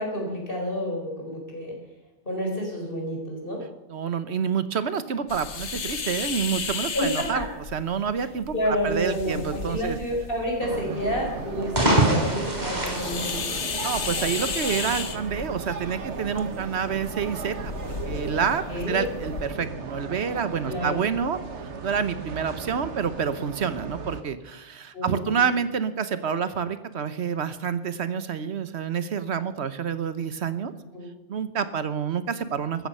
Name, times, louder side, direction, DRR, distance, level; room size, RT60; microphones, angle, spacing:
voice 1, 0.0-1.7 2.2-3.6 6.9-7.4 8.5-13.5 18.7-19.1 20.7-21.0 24.9-25.4 30.9-31.1, equal, 50° left, 0 dB, 4.8 m, -29 dB
voice 2, 3.9-10.0 13.8-30.7 31.3-32.9, right 7 dB, 70° right, 13 dB, 1.2 m, -28 dB
sound 1, 5.3-19.5, left 5 dB, 90° left, 1.5 m, -35 dB
sound 2, 10.6-24.2, right 4 dB, 90° right, 1.6 m, -36 dB
sound 3, 11.5-14.1, right 1 dB, 40° right, 3.8 m, -24 dB
14.5 x 14.5 x 5.5 m, 1.1 s
omnidirectional pair, 1.2 m